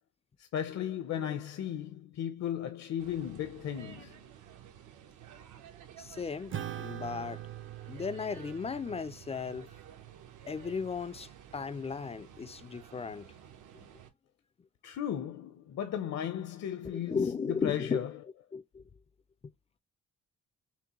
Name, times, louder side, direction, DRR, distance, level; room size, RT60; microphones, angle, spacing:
voice 1, 0.4-4.2 14.8-18.2, left 10 dB, 60° left, 0.7 m, -35 dB
sound 1, 3.0-14.1, right 9 dB, 80° right, 1.0 m, -53 dB
voice 2, 6.0-7.4 7.9-9.7 10.5-13.3 13.8-13.9 16.9-18.0 18.5-18.8, left 5 dB, 20° left, 0.4 m, -36 dB
Acoustic guitar / Strum, 6.5-11.3, right 11 dB, 40° right, 0.5 m, -44 dB
5.8 x 2.1 x 3.0 m
cardioid pair, 90°, 30 cm